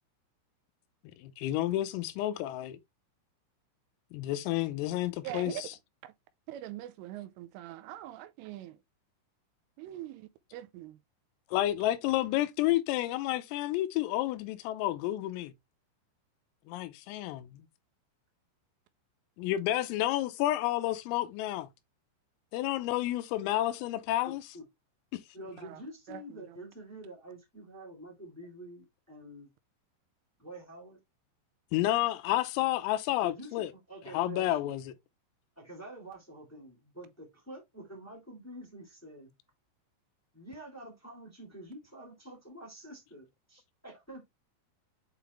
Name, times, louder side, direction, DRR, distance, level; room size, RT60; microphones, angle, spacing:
voice 1, 1.2-2.8 4.1-5.7 11.5-15.5 16.7-17.7 19.4-21.7 22.5-24.4 31.7-33.7 34.1-34.8, left 15 dB, 90° left, 3.4 m, -30 dB
voice 2, 5.2-5.6 6.0-6.1 6.5-8.8 9.8-11.0 25.6-25.8 26.1-26.6, right 12 dB, 85° right, 3.1 m, -43 dB
voice 3, 24.2-24.6 25.3-29.5 30.4-31.0 33.2-34.7 35.5-39.3 40.3-44.2, right 1 dB, 5° left, 1.3 m, -47 dB
8.4 x 4.0 x 3.1 m
omnidirectional pair, 6.0 m